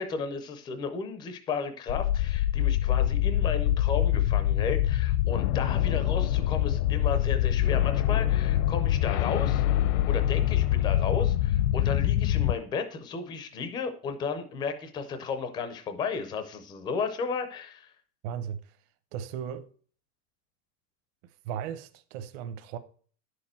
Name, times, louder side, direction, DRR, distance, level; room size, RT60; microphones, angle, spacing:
voice 1, 0.0-9.6 10.1-17.9, left 5 dB, 10° left, 0.4 m, -34 dB
sound 1, 1.9-12.5, left 12 dB, 65° left, 0.7 m, -25 dB
voice 2, 18.2-18.8 19.1-19.7 21.2-22.8, right 8 dB, 45° right, 0.9 m, -36 dB
10.5 x 6.7 x 4.2 m
supercardioid pair, 175°, 45 cm